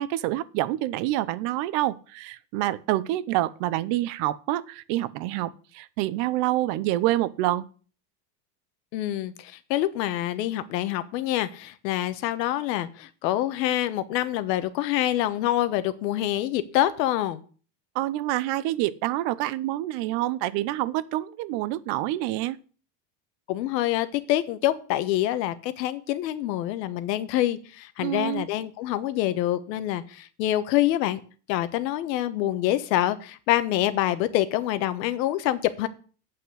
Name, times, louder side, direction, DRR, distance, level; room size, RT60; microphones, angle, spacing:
voice 1, 0.0-7.7 17.9-22.6 28.0-28.5, right 15 dB, 60° right, 18 dB, 0.8 m, -27 dB
voice 2, 8.9-17.4 23.5-31.2 31.5-35.9, left 13 dB, 90° left, 12 dB, 1.2 m, -26 dB
8.5 x 6.0 x 8.2 m, 0.40 s
supercardioid pair, 135°, 49 cm